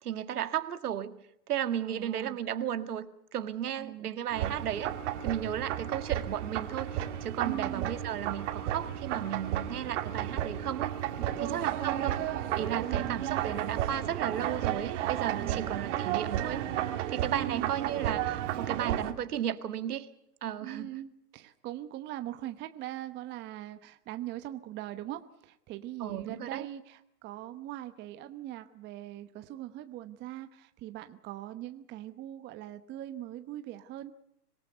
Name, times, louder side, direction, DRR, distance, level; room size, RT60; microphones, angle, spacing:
voice 1, 0.0-1.2 1.5-4.9 5.2-10.9 11.4-12.1 12.6-16.7 17.1-20.1 20.4-20.9 26.0-26.7, right 10 dB, 70° right, 10 dB, 1.8 m, -34 dB
voice 2, 1.8-2.4 3.8-4.1 4.4-4.5 7.4-7.9 11.2-11.7 12.8-13.2 15.4-15.8 17.3-17.7 20.6-34.1, right 13 dB, 20° right, 10 dB, 1.0 m, -41 dB
sound 1, 4.3-19.1, right 11 dB, 50° right, 2.6 m, -33 dB
25.5 x 18.5 x 7.9 m, 0.75 s
hypercardioid pair, 125°, 47 cm